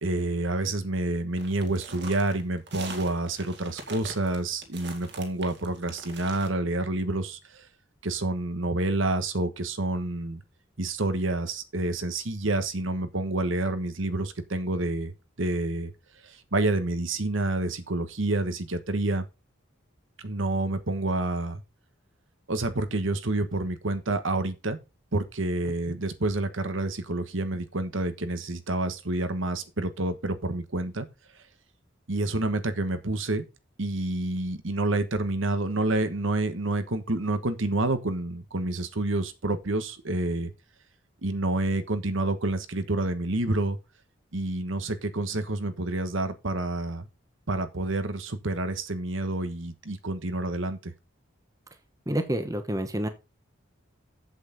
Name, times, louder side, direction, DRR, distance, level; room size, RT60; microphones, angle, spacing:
voice 1, 0.0-7.7 8.0-10.4 10.8-15.1 15.4-15.9 16.2-19.3 20.2-21.6 22.5-24.8 25.1-31.1 31.3-31.4 32.1-33.4 33.8-40.5 41.2-43.8 44.3-47.1 47.5-50.9, right 2 dB, 70° right, 1.3 m, -28 dB
sound 1, 1.4-6.5, right 3 dB, 55° right, 2.3 m, -43 dB
voice 2, 52.1-53.1, right 1 dB, 15° right, 1.1 m, -28 dB
8.0 x 8.0 x 4.0 m
head